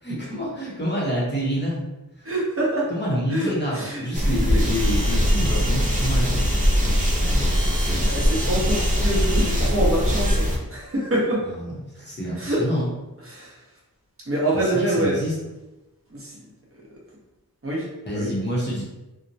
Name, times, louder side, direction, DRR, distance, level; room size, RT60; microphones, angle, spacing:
voice 1, 0.0-1.9 2.2-2.3 2.9-6.4 7.5-8.0 11.6-12.9 14.5-15.4 18.0-18.8, equal, 30° left, -6 dB, 0.8 m, -28 dB
voice 2, 2.2-2.9 3.3-4.0 6.9-7.4 7.9-11.4 12.4-12.6 13.2-13.5 14.3-15.2 16.2-16.3 17.6-17.8 18.1-18.3, right 1 dB, 35° right, -5 dB, 1.0 m, -25 dB
sound 1, 4.1-10.6, equal, 20° right, 0.6 m, -21 dB
2.9 x 2.1 x 2.6 m, 1.0 s
wide cardioid pair, 65°, 36 cm